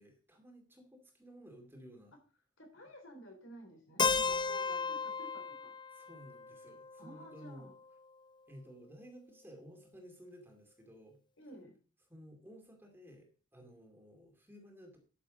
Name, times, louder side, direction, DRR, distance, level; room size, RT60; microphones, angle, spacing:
voice 1, 0.0-2.1 5.9-7.7 8.5-11.2 12.1-15.0, equal, 10° right, 2 dB, 2.4 m, -55 dB
voice 2, 2.6-5.7 7.0-7.7 11.4-11.8, equal, 65° left, 4 dB, 3.5 m, -53 dB
Keyboard (musical), 4.0-7.9, left 5 dB, 20° left, 0.7 m, -35 dB
11.5 x 7.1 x 5.1 m, 0.39 s
head